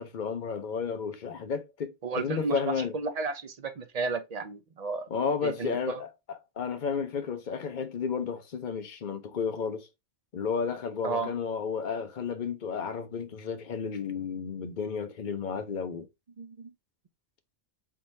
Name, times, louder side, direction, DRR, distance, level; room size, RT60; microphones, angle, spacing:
voice 1, 0.0-2.9 5.1-9.9 10.3-16.1, left 6 dB, 50° left, 0.8 m, -32 dB
voice 2, 2.0-5.1 5.4-6.0 11.0-11.3 16.4-16.7, right 4 dB, 45° right, 0.6 m, -33 dB
4.6 x 3.7 x 2.7 m
omnidirectional pair, 1.1 m